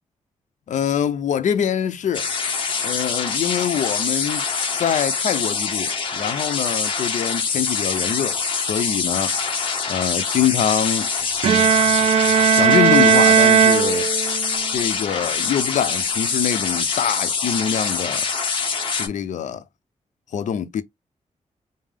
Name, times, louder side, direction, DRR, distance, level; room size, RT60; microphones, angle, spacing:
voice 1, 0.7-2.3 2.8-4.5 4.8-8.4 8.6-9.6 9.9-11.1 12.5-14.1 14.7-18.3 19.0-19.6 20.3-20.8, left 9 dB, 85° left, 0.7 m, -24 dB
sound 1, 2.1-19.1, left 5 dB, 45° left, 1.6 m, -24 dB
Bowed string instrument, 11.4-14.6, right 8 dB, 55° right, 0.4 m, -16 dB
5.4 x 2.0 x 3.5 m
wide cardioid pair, 175°, 12 cm